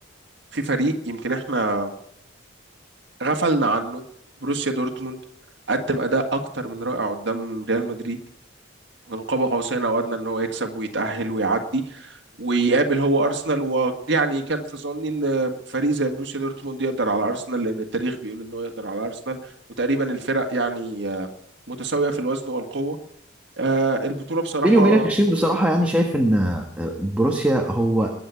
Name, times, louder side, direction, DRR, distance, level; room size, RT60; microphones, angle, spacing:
voice 1, 0.5-1.9 3.2-4.0 4.4-5.2 5.7-8.2 9.1-19.4 19.8-21.3 21.7-23.0 23.6-25.1 25.4-25.5, right 2 dB, 60° right, 4 dB, 1.8 m, -25 dB
voice 2, 24.6-28.1, right 1 dB, 5° right, 1 dB, 1.4 m, -20 dB
21.5 x 7.9 x 8.3 m, 0.74 s
head